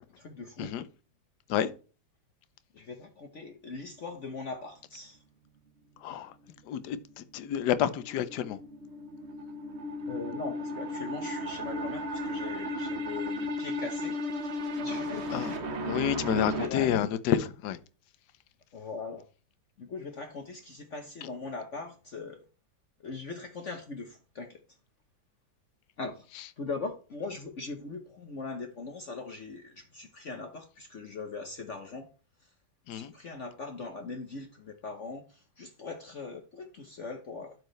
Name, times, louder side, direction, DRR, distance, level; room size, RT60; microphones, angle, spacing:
voice 1, 0.2-0.7 2.7-5.2 10.1-14.2 14.8-16.9 18.7-19.2 19.8-22.4 23.0-24.6 26.0-26.2 26.6-32.1 32.9-37.5, left 3 dB, 50° left, 1.1 m, -40 dB
voice 2, 6.0-6.3 6.7-8.6 15.3-15.6 15.9-17.8 21.2-21.3 32.9-33.1, left 10 dB, 70° left, 1.3 m, -29 dB
sound 1, 7.9-16.7, left 1 dB, 45° right, 1.0 m, -35 dB
12.0 x 4.7 x 3.1 m
omnidirectional pair, 2.0 m